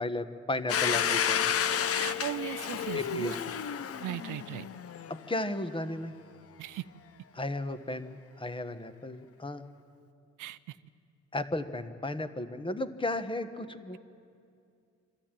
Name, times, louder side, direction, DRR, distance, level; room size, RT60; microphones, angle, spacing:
voice 1, 0.0-1.5 2.9-3.5 5.1-6.1 7.3-9.6 11.3-14.0, left 2 dB, 15° left, 9 dB, 1.2 m, -34 dB
Domestic sounds home sounds, 0.7-5.3, left 8 dB, 50° left, 0.8 m, -31 dB
voice 2, 2.0-3.4 4.0-4.7 6.6-6.8 10.4-10.6, right 14 dB, 80° right, 15 dB, 0.7 m, -37 dB
25.0 x 13.5 x 9.0 m, 2.5 s
cardioid pair, 90°, 30 cm